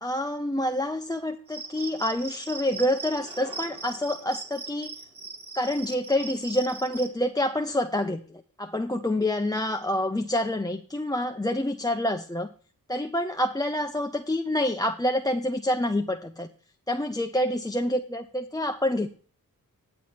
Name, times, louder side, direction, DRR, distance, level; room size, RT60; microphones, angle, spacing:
voice 1, 0.0-4.9 5.5-12.5 12.9-16.5 16.9-19.1, left 1 dB, 10° left, 5 dB, 0.7 m, -27 dB
sound 1, 1.2-1.3 1.6-2.4 2.9-5.5, left 1 dB, 15° right, 2.6 m, -51 dB
Cricket, 1.5-7.1, right 4 dB, 50° right, 1.7 m, -40 dB
10.0 x 7.7 x 4.2 m, 0.42 s
cardioid pair, 50°, 36 cm